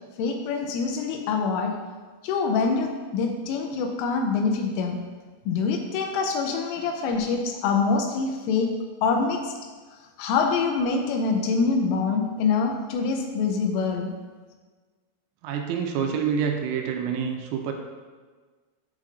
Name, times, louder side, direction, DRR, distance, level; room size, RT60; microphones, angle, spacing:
voice 1, 0.2-1.8 2.2-5.0 5.5-8.7 9.0-9.5 10.2-14.1, left 4 dB, 85° left, 3 dB, 3.2 m, -25 dB
voice 2, 15.4-17.7, right 7 dB, 90° right, 3 dB, 3.3 m, -27 dB
8.3 x 7.3 x 2.6 m, 1.4 s
omnidirectional pair, 5.7 m